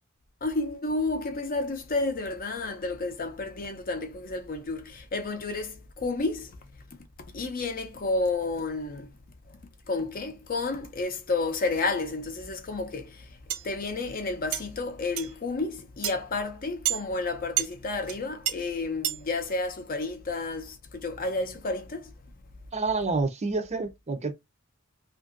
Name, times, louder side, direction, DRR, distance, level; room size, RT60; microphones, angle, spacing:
voice 1, 0.4-6.5 7.3-9.1 9.9-13.3 13.6-22.1, left 3 dB, 45° left, 0.6 m, -31 dB
sound 1, 13.5-13.7 14.5-14.6 15.2-15.3 16.0-16.1 16.8-17.0 17.6-17.7 18.1-18.2 18.5-18.6 19.0-19.2, right 13 dB, 75° right, 0.6 m, -28 dB
voice 2, 22.7-24.3, right 3 dB, 30° right, 0.5 m, -28 dB
2.7 x 2.6 x 2.5 m
head